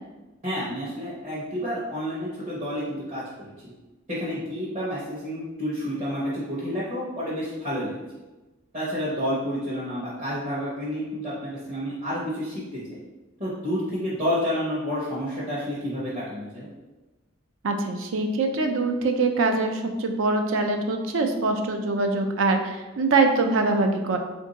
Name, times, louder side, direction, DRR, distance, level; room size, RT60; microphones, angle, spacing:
voice 1, 0.4-3.5 4.1-7.9 8.7-13.0 13.4-16.7, equal, 35° right, -10 dB, 0.9 m, -30 dB
voice 2, 17.6-24.2, right 3 dB, 75° right, 5 dB, 0.5 m, -23 dB
3.4 x 2.6 x 3.9 m, 1.1 s
head